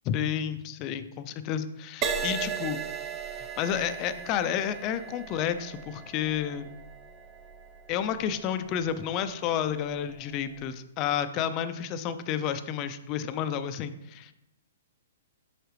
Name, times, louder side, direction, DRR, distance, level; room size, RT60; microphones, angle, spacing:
voice 1, 0.1-2.8 3.6-6.7 7.9-14.3, left 9 dB, 35° left, 11 dB, 0.5 m, -30 dB
Crash cymbal, 2.0-9.7 10.3-10.6, right 6 dB, 25° right, 0.7 m, -37 dB
8.0 x 5.7 x 3.2 m, 0.90 s
hypercardioid pair, 140°, 0 cm